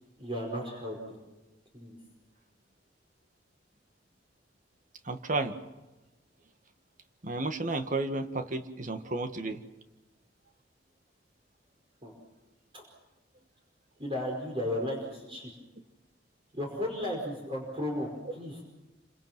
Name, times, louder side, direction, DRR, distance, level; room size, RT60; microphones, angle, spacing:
voice 1, 0.2-1.2 1.7-2.0 12.0-12.1 12.7-12.8 14.0-15.5 16.5-18.6, left 1 dB, 30° right, 0 dB, 5.2 m, -34 dB
voice 2, 5.1-5.6 7.2-9.6, right 2 dB, 45° right, 8 dB, 1.8 m, -32 dB
28.5 x 26.5 x 6.1 m, 1.1 s
head